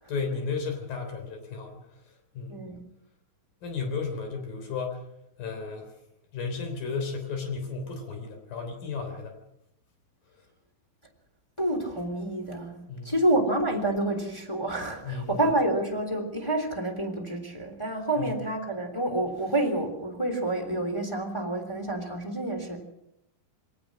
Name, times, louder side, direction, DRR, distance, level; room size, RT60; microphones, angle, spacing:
voice 1, 0.1-1.8 2.4-2.7 3.6-5.0 5.4-5.9 6.3-9.4 12.9-13.2 15.0-15.4 18.2-18.3, left 4 dB, 65° left, 5 dB, 5.2 m, -33 dB
voice 2, 2.5-2.8 11.6-12.8 13.0-22.8, right 1 dB, 10° left, 1 dB, 2.7 m, -28 dB
22.5 x 18.5 x 6.4 m, 0.84 s
omnidirectional pair, 4.5 m